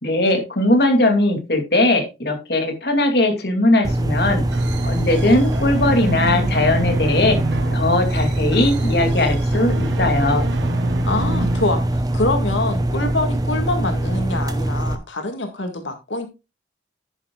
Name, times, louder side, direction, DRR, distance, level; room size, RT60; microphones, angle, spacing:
voice 1, 0.0-4.4 4.8-7.4 7.7-10.5, left 1 dB, 55° left, 2.5 m, -19 dB
sound 1, 3.8-15.0, right 1 dB, 20° right, 0.7 m, -22 dB
sound 2, 4.5-12.2, right 3 dB, 75° right, 1.0 m, -31 dB
voice 2, 11.0-16.3, left 2 dB, 80° left, 1.8 m, -25 dB
10.5 x 9.9 x 2.3 m
head